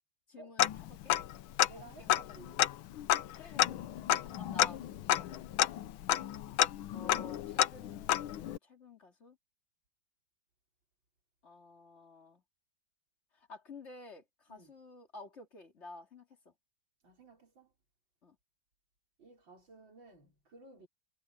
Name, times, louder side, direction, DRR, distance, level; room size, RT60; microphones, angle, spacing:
voice 1, 0.3-1.2 1.8-2.6 3.4-3.9 4.2-5.4 6.9-9.4 11.4-12.4 13.3-16.5 18.2-18.4, left 3 dB, 30° left, 2.8 m, -52 dB
Tick-tock, 0.6-1.3 1.6-1.7 2.1-8.6, left 12 dB, 75° left, 1.6 m, -30 dB
voice 2, 1.7-2.8 14.5-14.7 17.0-17.7 19.2-20.9, right 3 dB, 65° right, 5.7 m, -56 dB
omnidirectional pair, 2.3 m